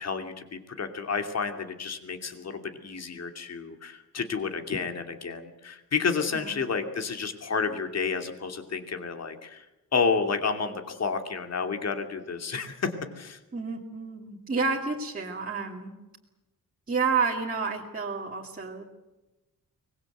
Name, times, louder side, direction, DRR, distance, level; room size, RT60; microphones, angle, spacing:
voice 1, 0.0-9.6 9.9-13.4, left 5 dB, 45° left, 6 dB, 2.7 m, -30 dB
voice 2, 6.3-6.7 13.5-15.9 16.9-18.8, right 5 dB, 25° right, -3 dB, 2.6 m, -30 dB
24.0 x 21.0 x 8.0 m, 1.1 s
wide cardioid pair, 150°, 34 cm